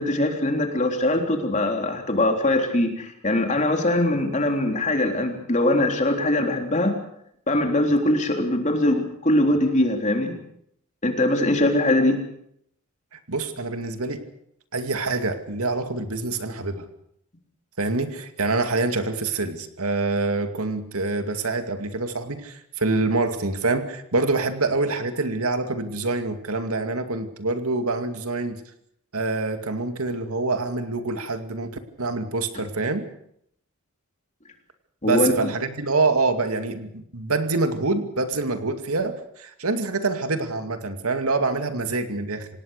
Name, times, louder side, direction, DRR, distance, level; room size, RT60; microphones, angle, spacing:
voice 1, 0.0-6.9 7.5-10.4 11.0-12.2 35.0-35.5, left 1 dB, 35° left, 3 dB, 3.7 m, -22 dB
voice 2, 13.1-14.3 14.7-16.9 17.8-28.6 29.1-31.7 32.0-33.1 35.0-42.5, right 3 dB, 85° right, 8 dB, 2.4 m, -26 dB
26.5 x 18.5 x 6.7 m, 0.72 s
head